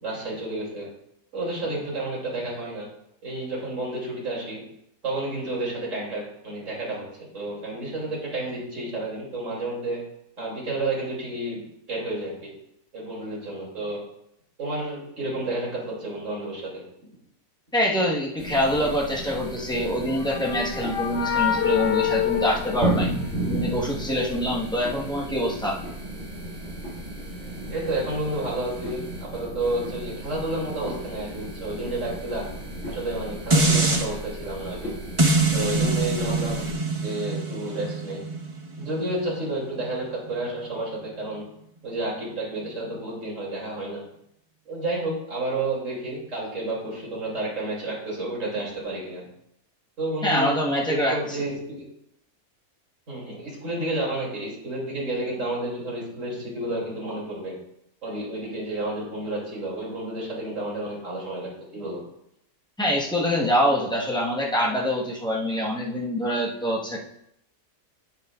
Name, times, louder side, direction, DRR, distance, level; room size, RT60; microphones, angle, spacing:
voice 1, 0.0-0.9 1.3-2.9 3.2-4.6 5.0-10.0 10.4-11.6 11.9-12.5 12.9-14.0 14.6-16.8 24.9-25.2 27.7-32.5 32.9-35.0 35.5-36.7 37.0-38.2 38.8-41.4 41.8-44.0 44.7-49.2 50.0-50.5 50.9-51.8 53.1-57.5 58.0-62.0, right 2 dB, 50° right, -4 dB, 3.3 m, -31 dB
voice 2, 17.7-23.1 23.5-25.8 50.2-51.4 62.8-67.0, equal, 5° left, -4 dB, 1.3 m, -25 dB
sound 1, 18.4-36.7, right 1 dB, 50° left, 3.0 m, -34 dB
sound 2, 19.7-23.6, left 9 dB, 75° left, 0.5 m, -27 dB
sound 3, 33.5-34.1 35.2-40.3 40.8-40.9, right 2 dB, 25° right, 0.9 m, -24 dB
9.3 x 8.5 x 2.5 m, 0.77 s
omnidirectional pair, 1.6 m